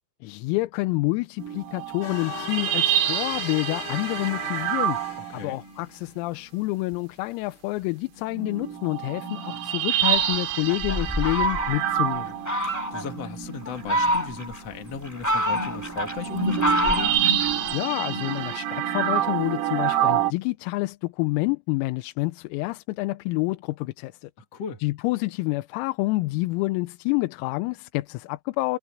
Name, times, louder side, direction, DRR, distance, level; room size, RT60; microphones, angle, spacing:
voice 1, 0.2-5.0 5.3-12.4 17.7-24.3 24.8-28.8, left 22 dB, 90° left, 3.5 m, -28 dB
sound 1, 1.4-5.9 6.9-7.0 8.2-20.3, right 10 dB, 85° right, 4.8 m, -28 dB
sound 2, 2.0-5.9, left 10 dB, 65° left, 4.0 m, -38 dB
Fowl, 9.9-12.0 12.4-13.1 13.6-14.6 15.0-17.8, equal, 20° left, 0.4 m, -27 dB
voice 2, 12.6-17.1 24.4-24.8, left 6 dB, 45° left, 2.4 m, -37 dB
omnidirectional pair, 6.0 m